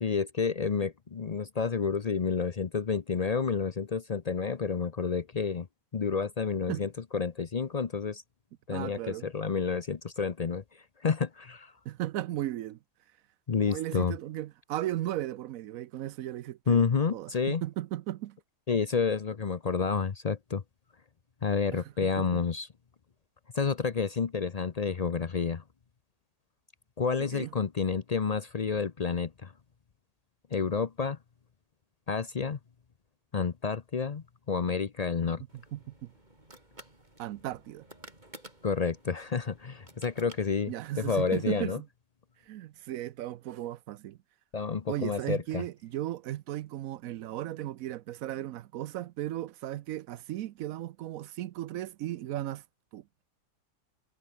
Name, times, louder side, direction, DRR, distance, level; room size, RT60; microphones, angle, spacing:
voice 1, 0.0-5.7 5.9-8.2 8.7-10.6 11.0-11.7 13.5-14.2 16.7-17.6 18.7-20.6 21.4-22.7 23.5-25.6 27.0-29.5 30.5-31.2 32.1-32.6 33.3-35.4 38.6-41.8 44.5-45.6, left 5 dB, 70° left, 0.3 m, -30 dB
voice 2, 8.7-9.3 11.8-12.8 13.6-18.4 21.7-22.4 27.2-27.5 35.5-36.1 37.2-37.9 40.7-41.9 42.5-44.2 44.9-52.6 52.9-53.0, right 13 dB, 65° right, 0.9 m, -36 dB
sound 1, 35.5-41.0, right 1 dB, 25° right, 5.1 m, -53 dB
omnidirectional pair, 1.8 m